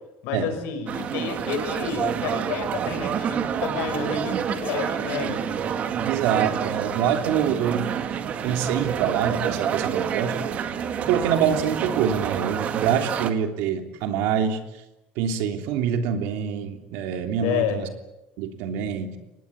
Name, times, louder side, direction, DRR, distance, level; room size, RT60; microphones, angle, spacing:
voice 1, 0.2-5.6 17.4-17.8, left 7 dB, 80° left, 7 dB, 5.9 m, -30 dB
sound 1, 0.9-13.3, right 8 dB, 40° right, 1.8 m, -28 dB
voice 2, 6.0-7.9 8.4-10.5 10.9-14.6 15.1-17.9 18.4-19.1, right 8 dB, 80° right, 6 dB, 3.2 m, -25 dB
25.0 x 19.5 x 9.5 m, 0.95 s
cardioid pair, 155°, 4 cm